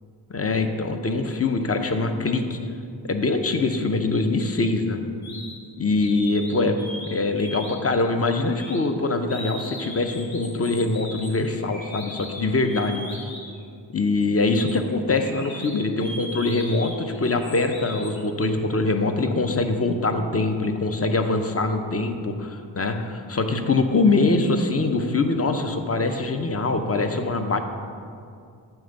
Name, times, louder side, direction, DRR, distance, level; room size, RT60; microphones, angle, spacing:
voice 1, 0.3-2.6 3.0-5.0 5.8-13.2 13.9-27.6, left 3 dB, 30° left, 6 dB, 0.7 m, -23 dB
sound 1, 5.2-5.6 6.0-7.1 7.4-7.9 8.5-8.8 9.3-13.6 14.2-18.2, left 1 dB, 90° left, 1.4 m, -39 dB
9.0 x 3.5 x 6.6 m, 2.4 s
cardioid pair, 60°, 44 cm